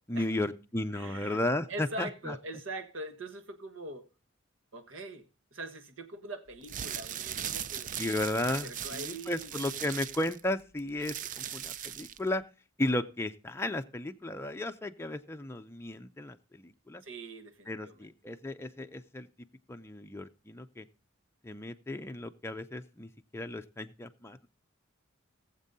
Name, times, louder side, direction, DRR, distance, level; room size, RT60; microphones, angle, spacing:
voice 1, 0.1-2.3 8.0-12.4 12.8-17.0 17.7-19.3 19.7-20.9 21.4-24.5, left 1 dB, 15° left, 0.5 m, -34 dB
voice 2, 0.9-1.4 1.7-4.1 4.7-7.9 8.6-9.6 11.0-11.3 17.0-18.1, right 2 dB, 75° right, 1.4 m, -43 dB
sound 1, 6.5-12.3, right 10 dB, 40° right, 0.4 m, -39 dB
19.5 x 7.4 x 2.7 m
head